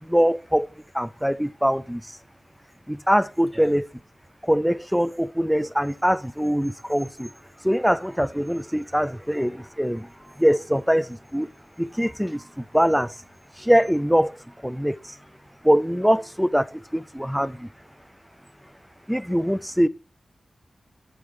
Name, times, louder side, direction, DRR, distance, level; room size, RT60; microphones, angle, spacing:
voice 1, 0.0-0.7 0.9-2.1 2.9-3.9 4.4-7.3 7.6-10.1 10.4-11.5 11.8-13.1 13.6-14.4 14.6-15.2 15.6-17.7 19.1-19.9, equal, ahead, 0.4 m, -23 dB
voice 2, 2.3-3.1 3.5-3.7 7.5-7.6 10.3-10.4 11.9-12.1 14.7-14.8 15.4-15.6 17.6-17.7 17.9-19.2, right 1 dB, 20° right, 2.2 m, -51 dB
9.1 x 8.2 x 3.6 m
wide cardioid pair, 100°, 0 cm